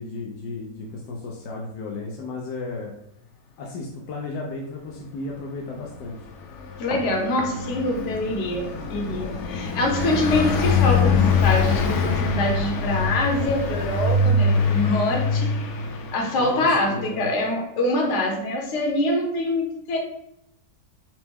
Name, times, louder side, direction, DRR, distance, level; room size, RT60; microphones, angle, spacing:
voice 1, 0.0-2.9 3.6-6.3 16.4-17.3, left 3 dB, 85° left, -2 dB, 1.3 m, -34 dB
Car passing by, 5.9-16.9, left 4 dB, 70° left, 0.7 m, -24 dB
voice 2, 6.8-15.8 16.1-20.0, left 1 dB, 50° left, 1 dB, 1.0 m, -25 dB
5.8 x 2.2 x 3.4 m, 0.78 s
omnidirectional pair, 1.8 m